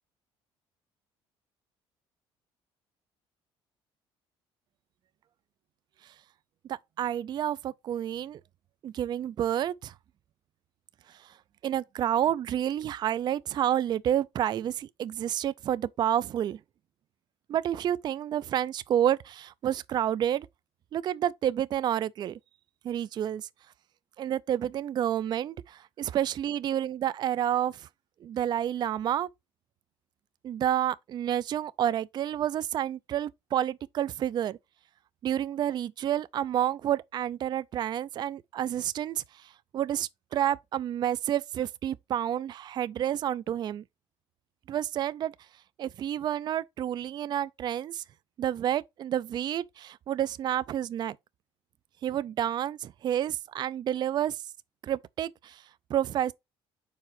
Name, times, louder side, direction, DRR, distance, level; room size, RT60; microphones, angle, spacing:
voice 1, 6.7-8.4 8.8-9.9 11.1-11.3 11.6-16.6 17.5-20.5 20.9-22.4 22.8-23.5 24.2-27.9 28.2-29.3 30.4-34.6 35.2-43.8 44.7-45.3 45.8-48.0 48.4-51.2 52.0-54.4 54.8-55.6 55.9-56.3, right 11 dB, 45° right, 0.4 m, -29 dB
4.7 x 4.3 x 5.6 m
cardioid pair, 120°, 10 cm